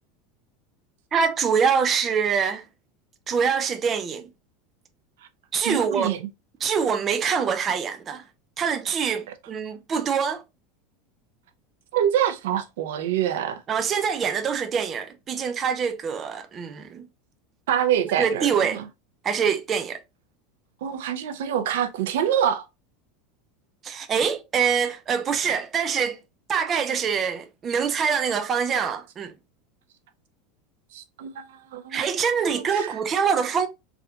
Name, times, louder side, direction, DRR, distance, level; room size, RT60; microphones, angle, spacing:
voice 1, 1.1-2.7 3.3-4.3 5.5-6.1 6.6-8.2 8.6-10.4 13.7-17.1 18.2-18.8 19.2-20.0 23.8-26.2 26.5-29.3 31.9-33.7, right 6 dB, 20° right, 0.3 m, -24 dB
voice 2, 5.6-6.2 11.9-13.6 17.7-18.8 20.8-22.7 30.9-32.0 32.7-32.9, right 10 dB, 85° right, 0.6 m, -25 dB
3.4 x 2.5 x 2.7 m
supercardioid pair, 165°, 0 cm